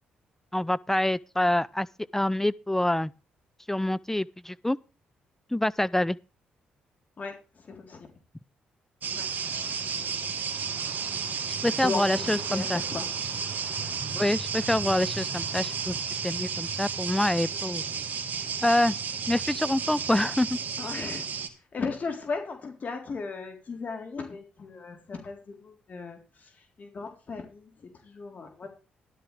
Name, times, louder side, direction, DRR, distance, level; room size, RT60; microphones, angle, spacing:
voice 1, 0.5-1.9 2.1-3.1 3.7-4.8 5.5-6.2 11.6-12.8 14.1-17.8 18.6-19.0 19.3-20.6, left 1 dB, 10° left, 0.5 m, -26 dB
voice 2, 7.2-8.1 9.1-9.3 11.8-13.4 14.2-14.3 20.8-21.3 21.7-28.7, left 4 dB, 45° left, 3.7 m, -37 dB
sound 1, 9.0-21.5, right 6 dB, 55° right, 2.3 m, -32 dB
12.5 x 12.0 x 3.4 m
hypercardioid pair, 50°, 4 cm